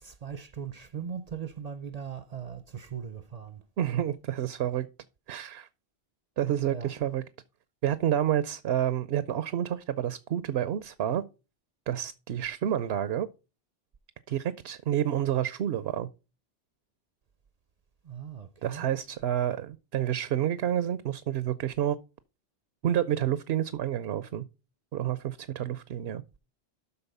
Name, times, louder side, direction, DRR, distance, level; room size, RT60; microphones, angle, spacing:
voice 1, 0.0-3.6 6.7-6.9 18.0-18.9, right 7 dB, 50° right, 0.6 m, -39 dB
voice 2, 3.8-4.9 5.3-5.7 6.4-7.2 7.8-11.2 11.9-13.3 14.3-16.1 18.6-22.0 22.8-24.4 24.9-26.2, right 11 dB, 80° right, 0.9 m, -29 dB
12.5 x 4.2 x 5.4 m
omnidirectional pair, 1.0 m